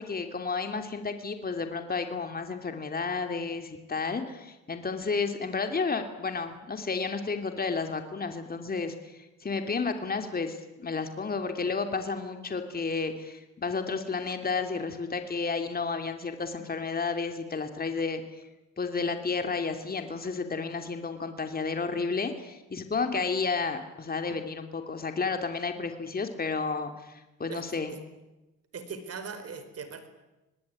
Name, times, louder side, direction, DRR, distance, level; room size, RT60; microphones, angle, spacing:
voice 1, 0.0-18.2 18.8-27.9, left 4 dB, 30° left, 6 dB, 2.9 m, -32 dB
voice 2, 27.5-28.0 28.7-30.1, right 5 dB, 50° right, 11 dB, 4.6 m, -40 dB
26.0 x 19.5 x 9.7 m, 1.0 s
cardioid pair, 90°, 30 cm